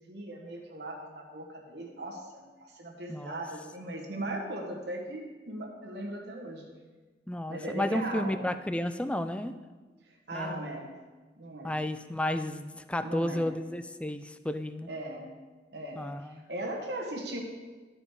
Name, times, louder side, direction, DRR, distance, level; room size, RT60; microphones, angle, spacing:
voice 1, 0.1-6.7 7.5-8.4 10.0-10.9 11.4-11.8 13.0-13.5 14.9-15.3 15.7-17.4, right 1 dB, 65° right, -1 dB, 1.4 m, -38 dB
voice 2, 7.3-9.5 10.3-10.7 11.6-14.9 16.0-16.4, left 1 dB, 5° left, 10 dB, 0.3 m, -32 dB
12.5 x 5.0 x 4.8 m, 1.3 s
head